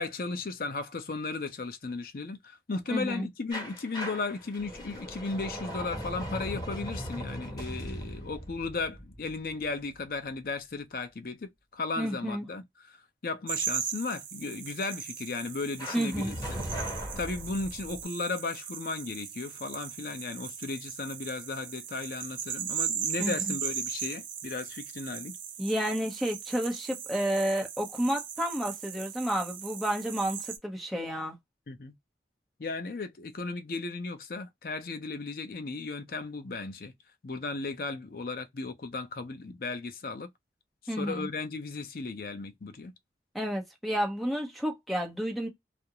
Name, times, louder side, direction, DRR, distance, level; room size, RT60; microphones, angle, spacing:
voice 1, 0.0-13.0 13.2-16.7 17.2-25.4 31.7-31.9 32.6-36.9 37.2-40.3 41.0-42.9, left 3 dB, 55° left, 0.5 m, -35 dB
voice 2, 2.9-3.3 12.0-12.5 15.9-16.3 23.2-23.5 25.6-31.4 40.9-41.3 43.3-45.5, equal, ahead, 0.7 m, -31 dB
sound 1, 3.5-10.3 15.8-18.0, equal, 25° left, 1.0 m, -39 dB
sound 2, 13.5-30.6, right 8 dB, 45° right, 0.6 m, -38 dB
2.3 x 2.1 x 2.8 m
head